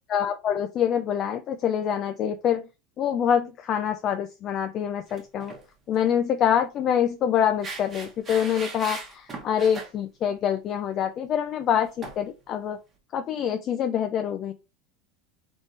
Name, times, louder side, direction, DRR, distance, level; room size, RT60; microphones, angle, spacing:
voice 1, 0.1-2.6 3.0-5.5 5.9-12.8 13.1-14.5, left 9 dB, 30° left, 7 dB, 0.4 m, -25 dB
sound 1, 5.1-5.6 5.9-6.1 7.6-9.9 12.0-12.2, right 3 dB, 20° right, 1.1 m, -38 dB
3.9 x 3.6 x 3.2 m, 0.28 s
supercardioid pair, 165°, 0 cm